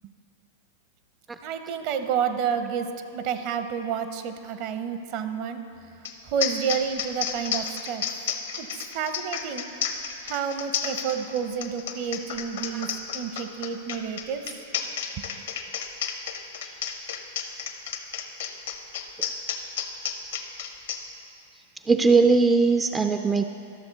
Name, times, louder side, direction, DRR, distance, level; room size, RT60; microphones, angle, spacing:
voice 1, 1.4-5.6 6.3-8.0 8.6-9.7 10.2-14.5 15.3-15.4, right 7 dB, 50° right, 9 dB, 0.7 m, -30 dB
sound 1, 6.0-6.1 6.4-21.0, left 8 dB, 70° left, 0.8 m, -31 dB
voice 2, 21.9-23.4, right 4 dB, 15° right, 7 dB, 0.3 m, -19 dB
12.5 x 6.7 x 4.0 m, 2.7 s
hypercardioid pair, 110°, 0 cm